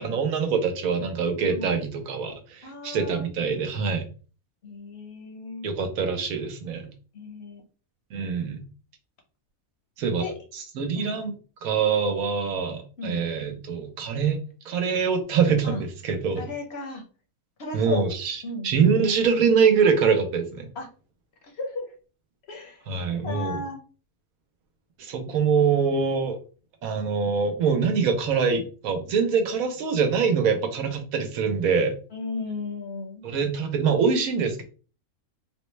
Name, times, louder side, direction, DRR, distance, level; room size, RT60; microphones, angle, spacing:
voice 1, 0.0-4.0 5.6-6.9 8.1-8.6 10.0-10.3 10.5-11.3 11.6-14.4 14.7-16.5 17.7-20.7 22.9-23.6 25.0-26.4 26.8-31.9 33.2-34.6, right 6 dB, 75° right, 6 dB, 1.1 m, -24 dB
voice 2, 1.5-1.8 2.6-3.3 4.6-5.7 7.1-7.6 10.2-10.3 11.0-11.1 13.0-13.2 15.6-15.8 16.4-17.0 17.6-18.0 18.4-18.7 20.8-20.9 21.6-21.8 22.5-22.8 23.2-23.8 32.1-33.2, left 3 dB, 55° left, 2 dB, 0.8 m, -34 dB
3.6 x 2.1 x 3.1 m, 0.37 s
omnidirectional pair, 1.5 m